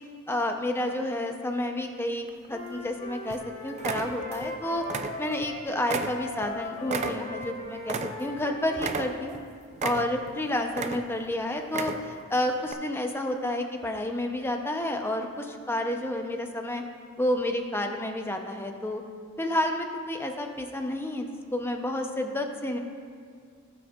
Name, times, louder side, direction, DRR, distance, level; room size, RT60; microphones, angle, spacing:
voice 1, 0.3-4.8 5.2-9.4 9.8-16.8 17.2-19.0 19.4-22.8, left 1 dB, 10° left, 4 dB, 0.6 m, -30 dB
sound 1, 2.3-2.9 3.3-3.5 3.8-4.5 4.8-5.5 5.9-8.5 8.8-9.4 9.8-10.3 10.7-11.3 11.6-12.2 12.7-12.8, right 4 dB, 35° right, 0.4 m, -33 dB
Wind instrument woodwind instrument, 2.5-9.3, left 2 dB, 35° left, 1.0 m, -40 dB
17.5 x 6.2 x 2.4 m, 2.1 s
head